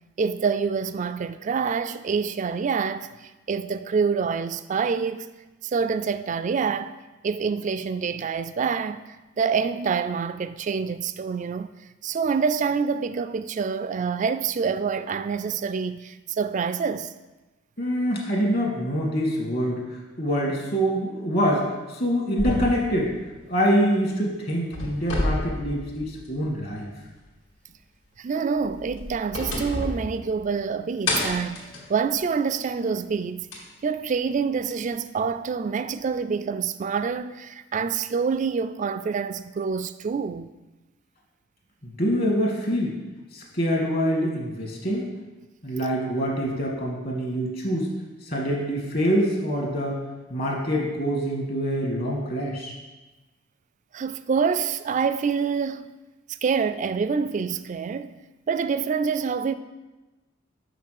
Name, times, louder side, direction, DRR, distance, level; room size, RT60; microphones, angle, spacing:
voice 1, 0.2-5.3 5.6-11.7 12.0-17.1 28.2-33.5 33.8-40.5 53.9-55.9 56.4-58.1 58.5-59.5, right 5 dB, 35° right, 0.3 m, -26 dB
voice 2, 17.8-19.9 20.2-23.1 23.5-26.9 41.8-43.0 43.3-45.1 45.6-47.9 48.3-50.0 50.3-52.7, equal, 45° left, 1.8 m, -25 dB
sound 1, 22.4-24.1 24.5-26.5 26.9-27.0 28.6-30.7 31.1-32.7 33.5-33.6 34.7-34.8, left 1 dB, 65° left, 2.1 m, -30 dB
6.0 x 5.9 x 6.5 m
head